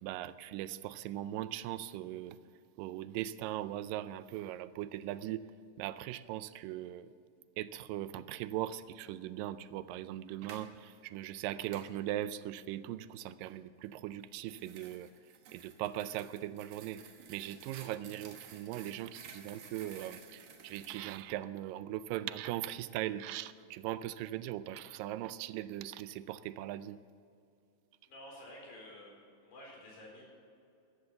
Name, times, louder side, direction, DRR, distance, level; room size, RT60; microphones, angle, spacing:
voice 1, 0.0-2.4 2.8-5.5 5.8-7.1 7.6-15.1 15.5-17.0 17.3-27.0, right 13 dB, 85° right, 14 dB, 2.2 m, -39 dB
sound 1, 10.3-10.7 11.7-11.9 14.1-21.2, right 6 dB, 60° right, 1.9 m, -54 dB
voice 2, 28.1-30.2, left 1 dB, 85° left, -1 dB, 6.2 m, -51 dB
14.5 x 12.0 x 6.9 m, 2.5 s
omnidirectional pair, 4.0 m